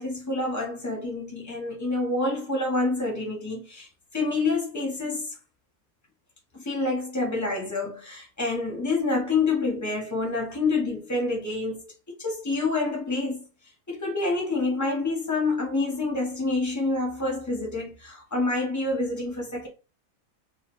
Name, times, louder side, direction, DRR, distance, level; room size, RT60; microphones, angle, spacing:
voice 1, 0.0-3.9 4.1-5.3 6.5-13.4 13.9-19.7, left 3 dB, 20° left, 0.5 m, -27 dB
2.7 x 2.1 x 2.9 m
omnidirectional pair, 1.7 m